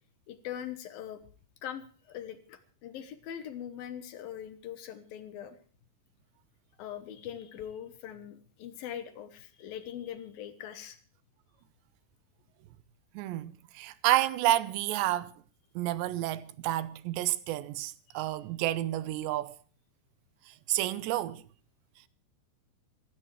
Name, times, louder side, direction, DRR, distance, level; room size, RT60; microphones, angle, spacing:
voice 1, 0.3-1.2 1.6-5.6 6.8-11.0 18.1-18.4, left 10 dB, 70° left, 2.6 m, -42 dB
voice 2, 13.1-15.3 15.8-19.6 20.5-21.4, right 14 dB, 85° right, 3.1 m, -30 dB
26.0 x 13.0 x 3.2 m
omnidirectional pair, 4.9 m